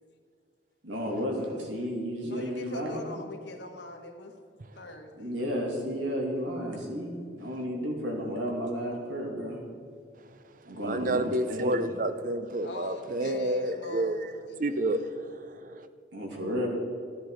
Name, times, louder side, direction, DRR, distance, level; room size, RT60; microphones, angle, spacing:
voice 1, 0.8-3.0 5.2-9.6 10.7-11.2 11.5-11.9 16.1-16.7, equal, 80° right, 2.6 m, -32 dB
voice 2, 2.3-4.4 4.7-5.3 10.1-10.3 11.2-11.3 11.6-11.8 12.6-15.1, left 2 dB, 65° left, 1.4 m, -43 dB
voice 3, 10.8-14.2 14.6-15.8, right 1 dB, 45° right, 0.6 m, -29 dB
14.5 x 10.0 x 4.9 m
head